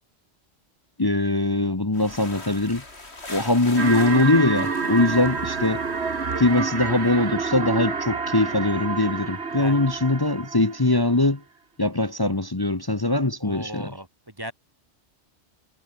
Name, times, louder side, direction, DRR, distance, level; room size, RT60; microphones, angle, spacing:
voice 1, 1.0-2.8 3.3-5.8 6.4-11.4 11.8-13.9, left 2 dB, 20° left, 1.2 m, -22 dB
sound 1, 1.9-7.1, left 2 dB, 65° left, 4.5 m, -42 dB
sound 2, 3.8-11.0, right 4 dB, 65° right, 2.2 m, -28 dB
voice 2, 9.5-9.9 13.4-14.5, equal, 20° right, 1.4 m, -37 dB
omnidirectional pair, 1.2 m